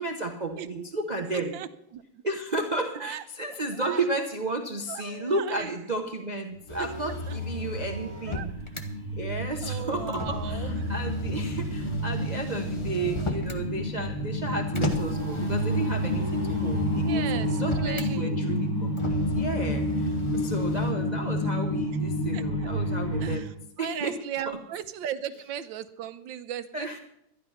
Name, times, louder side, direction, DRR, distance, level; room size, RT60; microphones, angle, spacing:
voice 1, 0.0-1.5 2.2-8.6 9.2-23.5 23.8-24.1 24.5-24.6 26.7-27.0, right 2 dB, 30° right, 4 dB, 0.8 m, -33 dB
voice 2, 0.5-0.9 1.3-2.0 3.0-3.2 3.8-4.0 4.9-5.7 7.0-7.4 8.3-8.5 9.6-10.9 16.9-18.4 22.3-22.7 23.2-23.5 23.8-27.0, right 10 dB, 80° right, 11 dB, 1.5 m, -37 dB
Motor vehicle (road), 6.7-8.8 10.1-13.7 14.7-18.1 19.0-20.9, left 1 dB, 20° left, 0.9 m, -36 dB
sound 1, 6.7-23.4, equal, 5° left, 2.8 m, -29 dB
13.0 x 11.0 x 5.7 m, 0.77 s
omnidirectional pair, 2.0 m